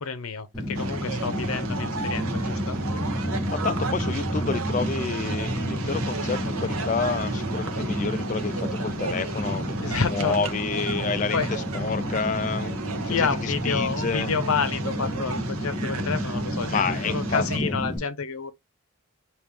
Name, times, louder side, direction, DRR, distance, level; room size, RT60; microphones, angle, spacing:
voice 1, 0.0-2.8 9.8-10.4 11.3-11.5 13.0-18.5, left 5 dB, 80° left, 0.7 m, -29 dB
Fire, 0.5-18.0, left 1 dB, 5° left, 2.6 m, -30 dB
sound 1, 0.7-17.6, right 5 dB, 85° right, 0.8 m, -35 dB
sound 2, 1.8-10.7, right 1 dB, 40° right, 0.9 m, -38 dB
voice 2, 3.5-12.8 13.1-14.3 16.7-17.7, left 5 dB, 35° left, 0.3 m, -29 dB
5.2 x 2.9 x 3.3 m
head